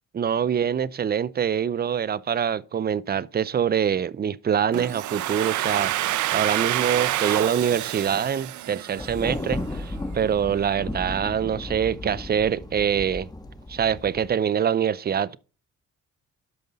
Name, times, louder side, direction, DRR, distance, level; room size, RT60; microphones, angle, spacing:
voice 1, 0.1-5.9 6.3-13.3 13.7-15.4, right 8 dB, 30° right, 0.5 m, -25 dB
Domestic sounds home sounds, 4.7-9.5, right 14 dB, 75° right, 0.6 m, -27 dB
Thunder, 9.0-14.3, left 2 dB, 15° left, 1.4 m, -35 dB
12.5 x 5.4 x 4.0 m
cardioid pair, 90°, 30 cm